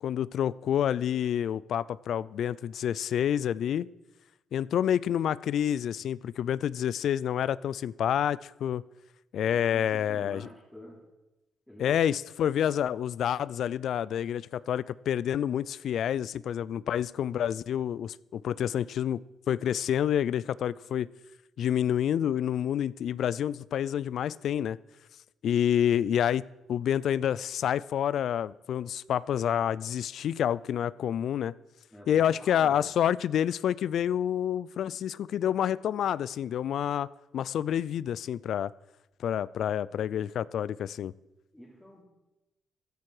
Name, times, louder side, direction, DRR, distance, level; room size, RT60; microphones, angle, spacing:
voice 1, 0.0-3.9 4.5-8.8 9.3-10.4 11.8-19.2 19.5-21.1 21.6-24.8 25.4-26.4 26.7-31.5 32.1-37.1 37.3-38.7 39.2-41.1, left 9 dB, 70° left, 21 dB, 0.4 m, -28 dB
voice 2, 9.4-11.0 11.7-12.0 31.9-33.0 41.5-42.0, left 1 dB, 5° left, -5 dB, 3.3 m, -47 dB
15.0 x 10.5 x 4.8 m, 0.99 s
cardioid pair, 90°, 0 cm